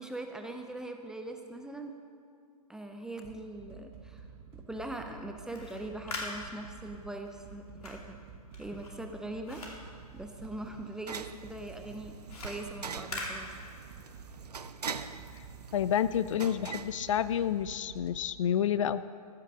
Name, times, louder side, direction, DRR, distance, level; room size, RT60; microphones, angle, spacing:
voice 1, 0.0-1.9 2.7-4.2 4.5-8.2 8.6-13.5, right 1 dB, 5° right, 4 dB, 0.5 m, -41 dB
sound 1, 3.2-18.2, right 5 dB, 40° right, 1.5 m, -50 dB
sound 2, 5.3-10.9 11.2-14.1, left 2 dB, 70° left, 2.8 m, -44 dB
sound 3, 9.5-17.8, right 6 dB, 85° right, 0.6 m, -44 dB
voice 2, 15.7-19.1, left 9 dB, 55° left, 15 dB, 0.4 m, -29 dB
15.0 x 6.6 x 6.1 m, 2.3 s
figure-of-eight pair, 125°, 20 cm